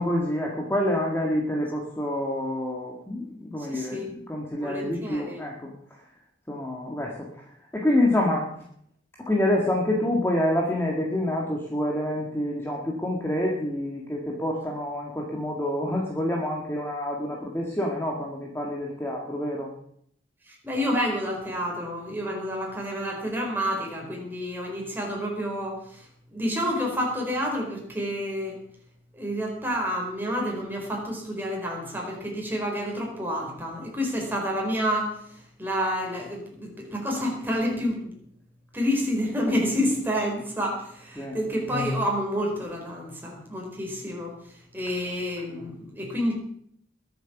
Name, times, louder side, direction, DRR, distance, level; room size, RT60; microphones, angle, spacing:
voice 1, 0.0-4.0 4.3-5.7 6.5-7.3 7.7-8.5 9.3-19.7 41.2-41.4, left 1 dB, 10° left, -2 dB, 1.9 m, -27 dB
voice 2, 3.7-4.1 4.6-5.4 20.5-26.0 26.3-28.6 29.2-35.2 35.6-38.1 38.7-44.3 44.7-46.3, equal, 10° right, -1 dB, 4.2 m, -29 dB
21.5 x 8.0 x 6.0 m, 0.68 s
head